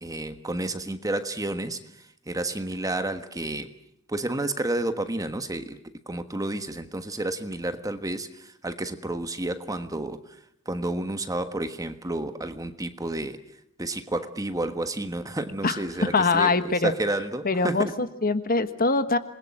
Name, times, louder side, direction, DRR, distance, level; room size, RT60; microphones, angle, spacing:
voice 1, 0.0-3.7 4.1-5.8 6.1-10.4 10.6-13.4 13.8-16.5 16.8-17.9, right 2 dB, 15° right, 9 dB, 1.4 m, -30 dB
voice 2, 15.6-16.9 17.4-19.2, left 3 dB, 45° left, 11 dB, 1.4 m, -23 dB
27.5 x 21.5 x 8.9 m, 0.75 s
head